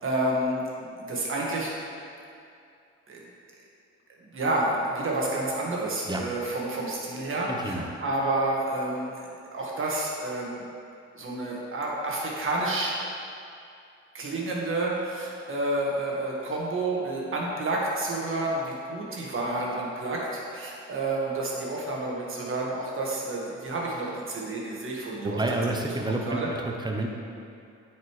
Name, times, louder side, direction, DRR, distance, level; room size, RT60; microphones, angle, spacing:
voice 1, 0.0-1.7 3.1-3.2 4.2-9.1 9.5-10.6 11.1-13.0 14.1-26.5, right 2 dB, 45° right, -3 dB, 1.6 m, -30 dB
voice 2, 7.5-7.9 25.2-27.1, right 2 dB, 15° right, 1 dB, 0.8 m, -29 dB
9.0 x 4.8 x 3.2 m, 2.5 s
cardioid pair, 90°, 30 cm